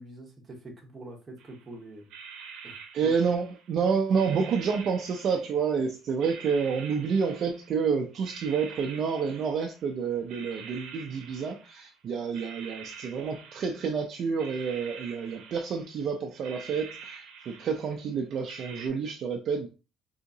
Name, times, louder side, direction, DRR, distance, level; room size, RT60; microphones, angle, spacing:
voice 1, 0.0-2.1 2.6-2.8 3.0-3.1, right 2 dB, 20° right, 1 dB, 0.9 m, -44 dB
sound 1, 1.4-1.7 2.0-3.7 4.1-5.8 6.2-7.8 8.2-9.9 10.3-12.0 12.3-14.0 14.4-16.0 16.4-18.1 18.5-18.9, right 6 dB, 75° right, 0.7 m, -46 dB
voice 2, 2.9-19.7, right 6 dB, 45° right, 4 dB, 0.4 m, -29 dB
3.6 x 2.7 x 2.6 m, 0.32 s
cardioid pair, 155°, 0 cm